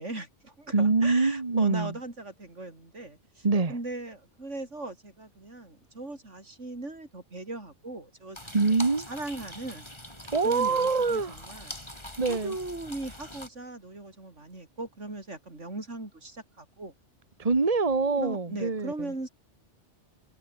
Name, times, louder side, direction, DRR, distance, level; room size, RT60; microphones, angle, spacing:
voice 1, 0.0-8.5 8.9-9.9 10.4-11.8 12.3-16.9 18.2-19.3, right 2 dB, 85° right, 5.1 m, -39 dB
voice 2, 0.7-1.9 3.4-3.7 8.5-9.1 10.3-11.3 12.2-12.5 17.4-19.1, right 4 dB, 30° right, 1.6 m, -25 dB
sound 1, 8.3-13.5, left 1 dB, 25° left, 6.1 m, -43 dB
omnidirectional pair, 1.2 m